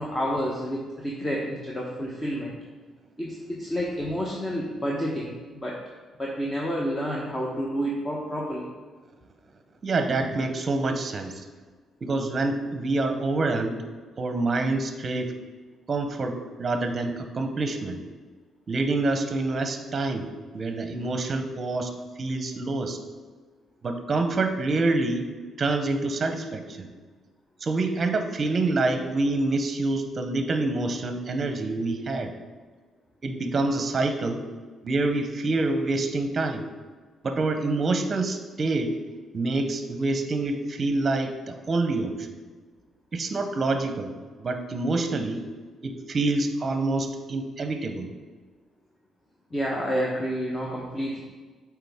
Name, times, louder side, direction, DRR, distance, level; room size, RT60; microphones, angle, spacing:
voice 1, 0.0-2.6 3.2-5.8 6.2-8.7 49.5-51.2, equal, 20° left, -3 dB, 0.9 m, -29 dB
voice 2, 9.8-11.5 12.0-13.8 14.2-15.3 15.9-18.0 18.7-20.3 20.5-21.9 22.2-23.0 23.8-25.3 25.6-26.9 27.6-32.3 33.2-34.4 34.8-36.6 37.2-38.9 39.3-42.3 43.1-45.4 45.8-48.1, right 2 dB, 40° right, 7 dB, 0.7 m, -26 dB
7.4 x 4.7 x 3.6 m, 1.4 s
cardioid pair, 90°, 0 cm